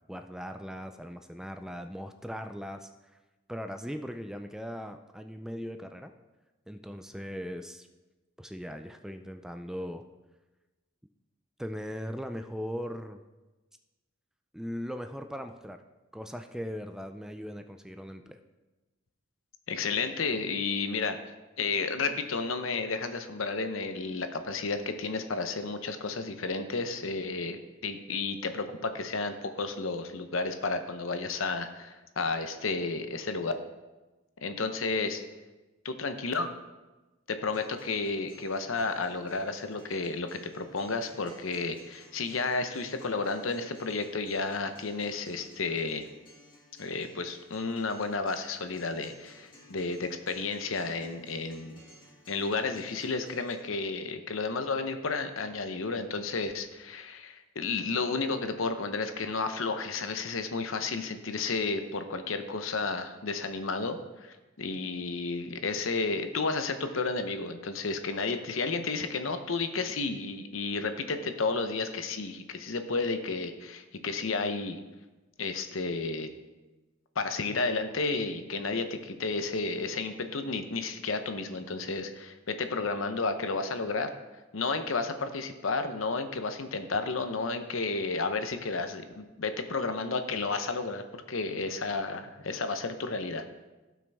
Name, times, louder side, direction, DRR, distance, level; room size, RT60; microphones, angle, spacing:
voice 1, 0.1-2.9 3.5-6.1 6.7-7.9 8.4-10.0 11.6-13.2 14.5-15.8 16.1-18.4, equal, 5° right, 7 dB, 0.4 m, -39 dB
voice 2, 19.7-21.2 21.6-33.5 34.4-35.2 35.8-36.5 37.3-46.1 46.8-51.8 52.3-74.8 75.4-76.3 77.2-84.1 84.5-93.4, left 3 dB, 70° left, 8 dB, 0.8 m, -32 dB
Acoustic guitar, 37.5-53.5, left 1 dB, 25° left, 2.4 m, -56 dB
16.0 x 6.0 x 3.5 m, 1.1 s
head